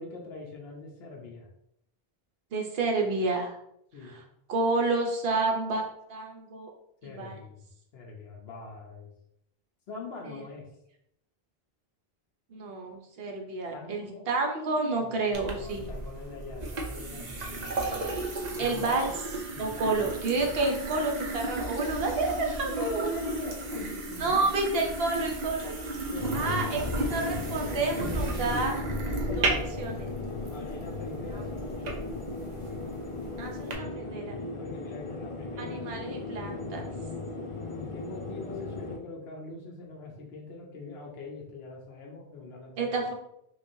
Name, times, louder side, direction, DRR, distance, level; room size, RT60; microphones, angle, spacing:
voice 1, 0.0-1.5 3.9-4.2 7.0-7.6 7.9-9.1 9.9-10.6 13.7-14.3 15.0-18.1 18.5-19.1 19.5-20.0 22.7-24.5 25.9-26.7 29.2-29.7 30.5-31.9 34.4-36.2 37.7-42.9, left 2 dB, 80° left, -1 dB, 1.0 m, -42 dB
voice 2, 2.5-3.5 4.5-6.7 7.0-7.4 10.2-10.4 12.5-15.8 18.6-19.1 19.6-23.0 24.2-25.8 26.3-28.8 29.4-30.1 33.4-34.4 35.6-36.9 42.8-43.1, right 3 dB, 70° right, 1 dB, 0.9 m, -30 dB
sound 1, 15.3-33.7, right 2 dB, 50° right, 0.7 m, -34 dB
sound 2, 26.2-39.0, left 3 dB, 45° left, 0.4 m, -37 dB
3.3 x 3.2 x 2.6 m, 0.76 s
omnidirectional pair, 1.1 m